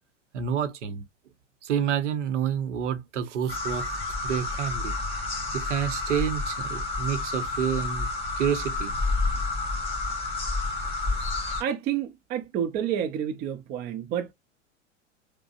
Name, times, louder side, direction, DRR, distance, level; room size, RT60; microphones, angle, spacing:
voice 1, 0.3-1.0 1.6-3.9 4.2-4.9 5.5-8.1 8.4-8.9, right 8 dB, 70° right, 0.8 m, -28 dB
sound 1, 3.5-11.6, left 3 dB, 15° left, 1.9 m, -29 dB
voice 2, 11.6-14.3, right 9 dB, 25° right, 0.5 m, -29 dB
4.8 x 2.1 x 2.3 m
figure-of-eight pair, 95°, 37 cm